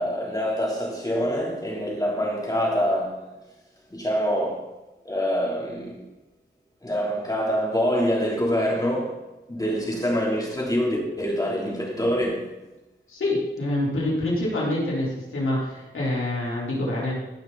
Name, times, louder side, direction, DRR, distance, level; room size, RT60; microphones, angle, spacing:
voice 1, 0.0-3.3 3.9-4.7 5.0-6.1 6.8-9.2 9.5-12.6, equal, 20° left, 3.3 m, -25 dB
voice 2, 13.1-17.1, left 1 dB, 90° left, 4.0 m, -26 dB
15.5 x 6.0 x 4.1 m
cardioid pair, 55°, 20 cm